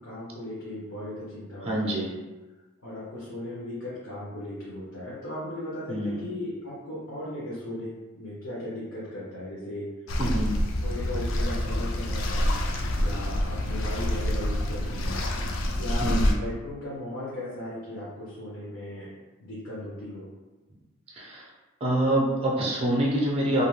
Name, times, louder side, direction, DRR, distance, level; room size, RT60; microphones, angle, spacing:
voice 1, 0.0-2.0 2.8-10.1 10.8-12.5 12.9-15.2 15.8-19.1 19.4-20.3, left 1 dB, 75° left, -8 dB, 0.8 m, -37 dB
voice 2, 1.6-2.1 5.9-6.3 10.2-10.6 15.7-16.4 21.1-21.5 21.8-23.6, right 1 dB, 25° right, -3 dB, 0.4 m, -26 dB
sound 1, 10.1-16.3, left 1 dB, 60° left, 0.3 m, -27 dB
2.4 x 2.1 x 3.1 m, 1.2 s
head